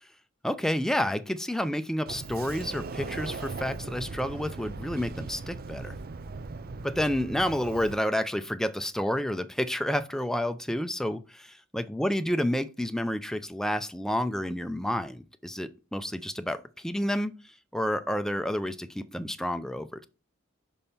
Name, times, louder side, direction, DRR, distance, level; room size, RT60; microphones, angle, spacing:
voice 1, 0.4-5.9 6.8-17.3 17.7-20.1, equal, 5° left, 0.4 m, -30 dB
Sliding door, 2.1-7.9, right 3 dB, 50° right, 0.5 m, -39 dB
5.4 x 5.3 x 4.3 m
head